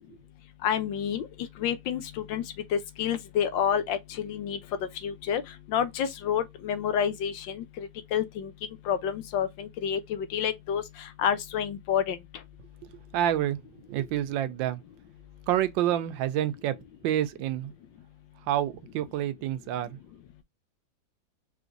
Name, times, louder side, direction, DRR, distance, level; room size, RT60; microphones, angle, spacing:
voice 1, 0.6-1.3 1.6-2.4 2.7-4.6 5.0-5.4 5.7-8.5 8.9-10.8 11.2-12.2, left 8 dB, 80° left, 1.4 m, -29 dB
voice 2, 13.1-13.6 13.9-14.8 15.5-16.8 17.0-17.7 18.5-20.0, right 12 dB, 80° right, 1.3 m, -28 dB
5.0 x 3.2 x 2.5 m
omnidirectional pair, 2.0 m